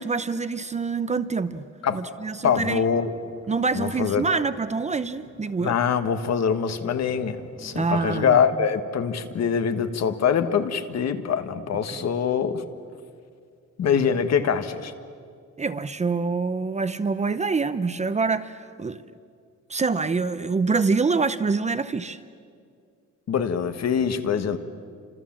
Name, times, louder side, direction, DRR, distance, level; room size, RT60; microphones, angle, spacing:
voice 1, 0.0-1.6 1.9-2.8 3.5-5.7 7.7-8.4 11.9-12.1 15.6-19.0 19.7-22.2, right 4 dB, 25° right, 12 dB, 0.6 m, -26 dB
voice 2, 2.4-3.1 3.7-4.3 5.6-12.6 13.8-14.9 23.3-24.6, left 7 dB, 60° left, 9 dB, 1.5 m, -24 dB
sound 1, 2.6-8.2, right 2 dB, 45° right, 6.5 m, -48 dB
30.0 x 26.5 x 7.4 m, 2.2 s
wide cardioid pair, 170°, 30 cm